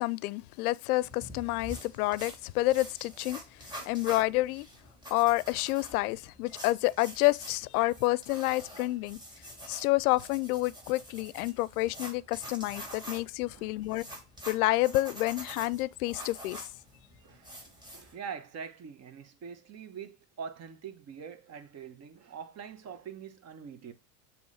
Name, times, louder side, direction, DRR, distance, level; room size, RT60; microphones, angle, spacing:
voice 1, 0.0-4.7 5.1-9.2 9.7-14.0 14.5-16.6, left 19 dB, 85° left, 0.5 m, -29 dB
sound 1, 1.0-18.1, equal, 10° right, 3.0 m, -47 dB
voice 2, 17.8-23.9, right 7 dB, 35° right, 1.1 m, -44 dB
7.1 x 3.1 x 5.4 m
supercardioid pair, 110°, 43 cm